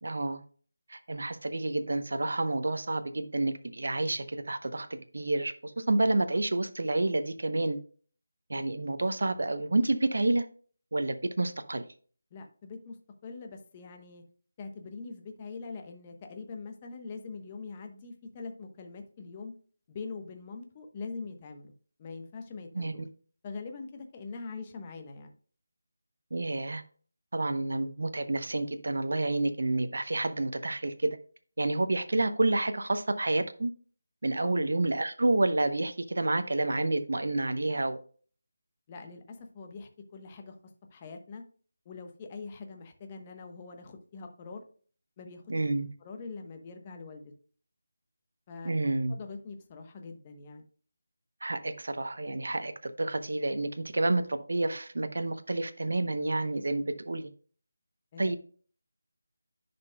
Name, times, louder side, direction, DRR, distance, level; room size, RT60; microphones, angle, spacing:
voice 1, 0.0-0.4 0.9-7.8 8.5-10.4 10.9-11.9 22.7-23.0 26.3-26.8 27.3-31.2 31.6-33.7 34.2-38.0 45.5-45.9 48.6-49.1 51.4-57.3 58.2-58.4, right 2 dB, 70° right, 10 dB, 0.7 m, -29 dB
voice 2, 12.3-13.0 13.2-14.2 14.6-19.5 19.9-21.7 22.0-23.0 23.4-25.3 34.4-34.7 38.9-40.6 40.9-41.4 41.8-44.7 45.2-45.5 46.0-47.3 48.5-48.7 49.1-50.6 58.1-58.4, left 4 dB, 20° left, 5 dB, 1.0 m, -43 dB
10.5 x 5.2 x 2.2 m, 0.43 s
figure-of-eight pair, 165°, 0 cm